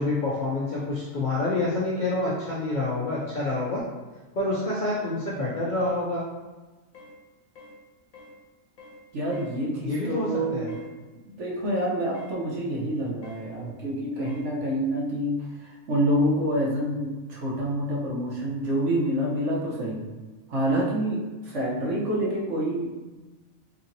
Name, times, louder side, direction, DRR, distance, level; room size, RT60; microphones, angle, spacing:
voice 1, 0.0-3.8 4.3-6.2 9.8-10.7, left 2 dB, 60° left, -7 dB, 0.5 m, -27 dB
sound 1, 6.9-7.2 7.6-7.8 8.1-8.4 8.8-9.0 9.3-9.6 10.7-10.9 12.1-12.4 13.2-13.5 14.2-14.5, left 2 dB, 90° left, 1.0 m, -46 dB
voice 2, 9.1-10.8 11.3-20.1 20.5-22.9, right 1 dB, 65° right, -4 dB, 1.0 m, -27 dB
2.9 x 2.7 x 2.6 m, 1.2 s
omnidirectional pair, 1.4 m